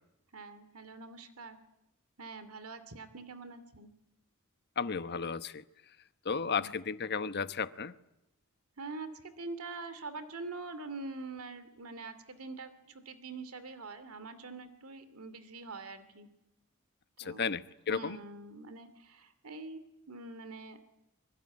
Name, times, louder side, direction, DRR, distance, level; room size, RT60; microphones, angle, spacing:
voice 1, 0.3-1.6 2.2-3.9 6.5-6.7 8.8-16.3 17.2-17.5 17.9-20.8, right 3 dB, 80° right, 12 dB, 2.6 m, -44 dB
voice 2, 4.8-5.6 6.2-8.0 17.2-18.2, left 5 dB, 50° left, 12 dB, 1.1 m, -34 dB
25.5 x 24.0 x 9.8 m, 0.88 s
head